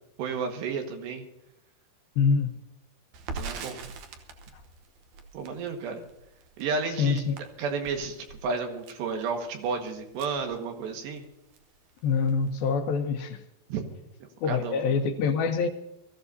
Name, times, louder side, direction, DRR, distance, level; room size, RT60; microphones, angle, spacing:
voice 1, 0.2-1.3 3.3-3.9 5.3-6.0 6.6-7.2 7.6-11.3 13.7-13.9 14.5-14.9, right 5 dB, 90° right, 3.8 m, -32 dB
voice 2, 2.2-2.6 4.5-4.6 7.0-7.4 12.0-13.4 14.4-15.7, left 5 dB, 75° left, 2.4 m, -25 dB
Crackle, 3.1-11.2 11.5-11.7 12.0-12.7, right 4 dB, 70° right, 2.0 m, -43 dB
23.5 x 14.5 x 2.7 m
omnidirectional pair, 4.8 m